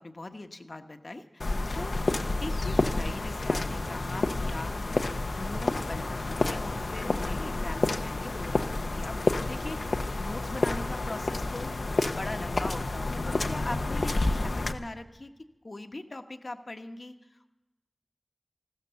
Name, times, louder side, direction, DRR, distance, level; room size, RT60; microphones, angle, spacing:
voice 1, 0.0-2.0 2.4-9.2 9.5-15.3 15.6-17.1, left 2 dB, 60° left, 7 dB, 1.1 m, -41 dB
sound 1, 1.4-14.7, left 2 dB, 90° left, 0.8 m, -29 dB
15.0 x 13.5 x 6.9 m, 1.0 s
wide cardioid pair, 50°, 0 cm